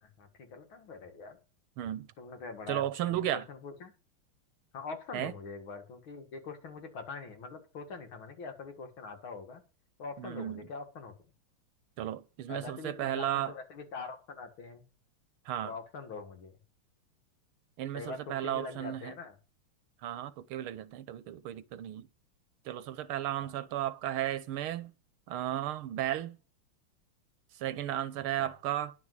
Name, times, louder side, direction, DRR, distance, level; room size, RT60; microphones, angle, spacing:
voice 1, 0.0-1.4 2.2-3.9 4.7-9.6 10.0-11.1 12.5-14.9 15.6-16.6 17.9-19.4 23.4-23.5 28.4-28.5, left 4 dB, 70° left, 2.7 m, -43 dB
voice 2, 1.8-2.1 2.7-3.5 5.1-5.3 10.2-10.6 12.0-13.5 15.5-15.7 17.8-19.1 20.0-22.1 22.7-24.9 25.3-26.4 27.6-28.9, right 12 dB, 85° right, 1.7 m, -34 dB
10.5 x 6.0 x 8.0 m
omnidirectional pair, 2.3 m